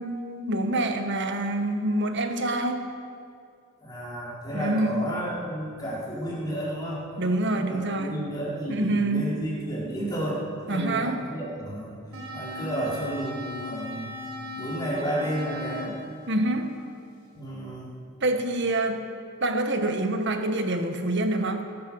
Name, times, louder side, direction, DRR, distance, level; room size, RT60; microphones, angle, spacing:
voice 1, 0.0-2.9 4.5-5.1 7.2-8.3 8.7-9.3 10.7-11.2 16.3-16.7 18.2-19.0 19.4-21.7, right 1 dB, 55° right, 6 dB, 1.4 m, -26 dB
voice 2, 3.8-7.0 7.5-11.9 12.3-14.1 14.5-16.0 17.3-17.9, right 1 dB, 20° left, -7 dB, 4.4 m, -32 dB
sound 1, 12.1-17.2, left 1 dB, 75° right, 3.7 m, -38 dB
20.0 x 10.5 x 6.3 m, 2.4 s
head